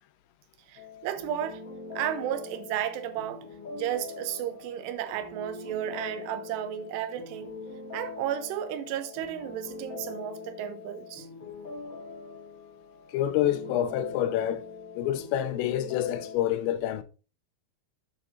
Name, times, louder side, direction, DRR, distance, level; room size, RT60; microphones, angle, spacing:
sound 1, 0.7-16.3, left 4 dB, 60° left, 0.8 m, -42 dB
voice 1, 0.7-1.6 1.9-3.5 3.7-7.5 7.9-11.3, right 11 dB, 80° right, 2.7 m, -33 dB
voice 2, 13.1-14.7 15.0-17.0, left 11 dB, 80° left, 2.8 m, -27 dB
8.2 x 7.1 x 2.6 m
omnidirectional pair, 5.3 m